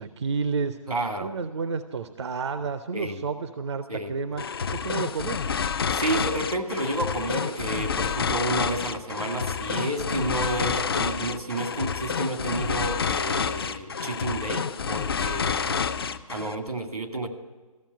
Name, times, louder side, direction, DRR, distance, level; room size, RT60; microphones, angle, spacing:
voice 1, 0.0-0.8 1.2-4.4 4.7-5.4, right 5 dB, 50° right, 10 dB, 0.6 m, -30 dB
voice 2, 0.9-1.3 2.9-3.2 3.9-4.4 5.9-15.8 16.3-17.3, right 2 dB, 85° right, 6 dB, 2.0 m, -30 dB
sound 1, 4.4-16.6, left 6 dB, 40° left, 0.5 m, -29 dB
14.0 x 7.1 x 9.2 m, 1.2 s
figure-of-eight pair, 145°, 19 cm